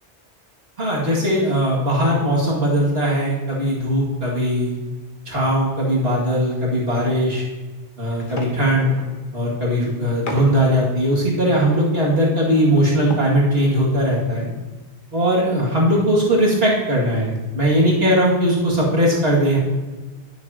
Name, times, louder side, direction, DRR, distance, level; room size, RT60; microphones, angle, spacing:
voice 1, 0.8-4.8 5.3-7.4 8.0-8.9 9.3-14.5 15.1-19.6, equal, 60° right, -5 dB, 2.5 m, -19 dB
sound 1, 8.0-9.2 9.9-10.6 11.0-11.1 11.3-13.5 13.8-13.9 14.2-14.4 14.6-14.7 16.3-16.9 17.3-17.5 17.8-18.1, left 1 dB, 50° left, 1.2 m, -35 dB
10.0 x 9.8 x 2.9 m, 1.2 s
omnidirectional pair, 1.1 m